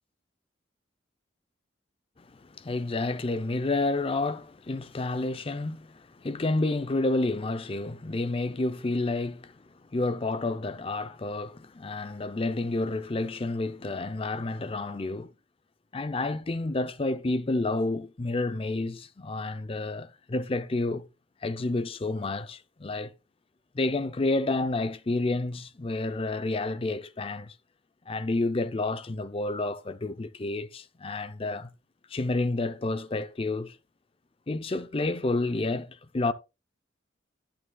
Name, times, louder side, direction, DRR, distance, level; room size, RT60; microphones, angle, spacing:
voice 1, 2.3-9.6 9.9-15.3 15.9-21.1 21.4-23.1 23.7-27.5 28.1-31.7 32.1-33.8 34.5-36.3, left 2 dB, 30° left, 0.5 m, -30 dB
11.0 x 8.6 x 2.3 m
head